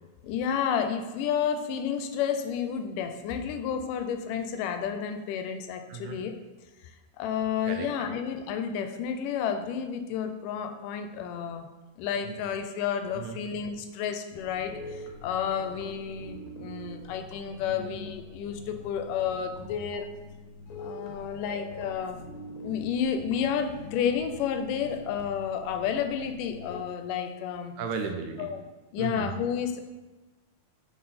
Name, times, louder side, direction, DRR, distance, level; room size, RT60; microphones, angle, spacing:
voice 1, 0.2-6.4 7.2-11.7 12.0-20.1 20.8-22.2 22.6-27.7 28.4-28.6 28.9-29.8, left 8 dB, 90° left, 7 dB, 2.2 m, -31 dB
sound 1, 14.3-26.8, left 2 dB, 70° left, 1.9 m, -44 dB
voice 2, 27.8-28.5 29.0-29.3, right 6 dB, 80° right, 4 dB, 1.9 m, -35 dB
5.8 x 4.7 x 4.1 m, 1.2 s
omnidirectional pair, 3.7 m